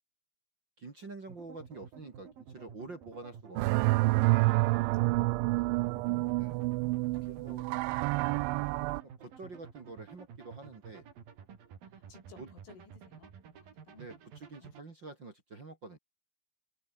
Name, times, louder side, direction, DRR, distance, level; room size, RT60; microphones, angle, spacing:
voice 1, 0.8-4.2 6.4-6.6 7.2-7.7 9.2-11.1 12.4-12.5 13.9-16.0, right 3 dB, 30° right, 2.6 m, -47 dB
sound 1, 1.3-14.8, right 7 dB, 50° right, 5.0 m, -52 dB
sound 2, 3.6-9.0, right 21 dB, 85° right, 3.0 m, -28 dB
voice 2, 4.8-5.3 5.6-6.4 7.0-7.8 12.0-14.0 14.6-14.8, left 5 dB, 85° left, 9.2 m, -59 dB
omnidirectional pair, 5.5 m